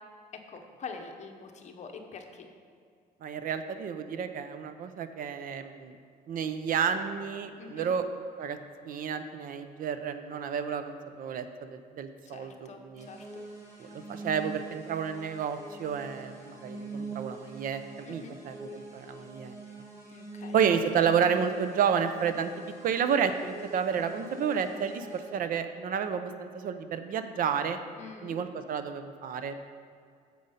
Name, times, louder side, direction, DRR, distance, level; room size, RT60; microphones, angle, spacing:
voice 1, 0.3-2.5 7.6-7.9 12.3-12.8 13.1-13.4 18.1-18.4 20.1-20.5 28.0-28.4, left 5 dB, 45° left, 5 dB, 0.9 m, -45 dB
voice 2, 3.2-5.9 6.3-8.1 8.4-8.6 8.8-13.1 13.8-19.5 20.5-22.5 22.8-27.8 28.2-29.6, right 7 dB, 55° right, 9 dB, 0.6 m, -31 dB
sound 1, 13.0-25.3, right 3 dB, 15° right, 1.6 m, -44 dB
7.7 x 5.2 x 5.6 m, 2.2 s
cardioid pair, 110°, 17 cm